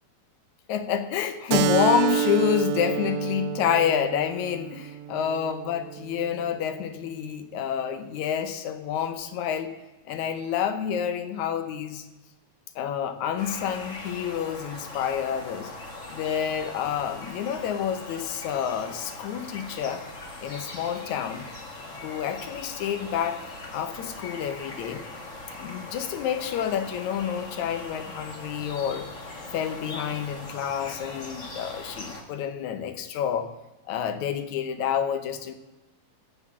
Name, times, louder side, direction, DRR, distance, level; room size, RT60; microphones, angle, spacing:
voice 1, 0.7-9.7 10.1-12.1 12.8-15.7 16.1-20.1 20.4-21.5 21.9-23.4 23.7-25.0 25.6-29.1 29.5-33.5 33.9-35.5, left 8 dB, 70° left, 9 dB, 1.9 m, -28 dB
Keyboard (musical), 1.5-6.6, right 10 dB, 85° right, 2.4 m, -29 dB
sound 1, 13.4-32.2, left 2 dB, 45° left, 0.9 m, -40 dB
15.0 x 6.3 x 7.4 m, 1.1 s
omnidirectional pair, 4.3 m